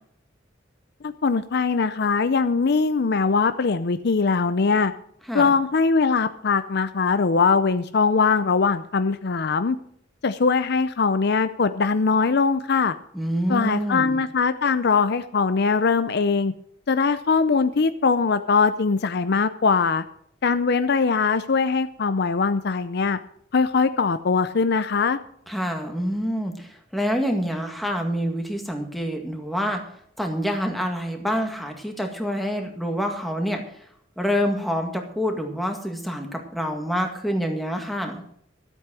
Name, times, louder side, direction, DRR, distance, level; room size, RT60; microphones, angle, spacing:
voice 1, 1.0-4.9 5.3-9.8 10.2-13.0 13.5-16.5 16.9-20.0 20.4-23.2 23.5-25.2, left 4 dB, 55° left, 12 dB, 0.5 m, -21 dB
voice 2, 13.1-14.2 25.5-29.8 30.2-33.6 34.2-38.2, equal, ahead, 2 dB, 1.9 m, -27 dB
12.5 x 8.3 x 6.2 m, 0.67 s
head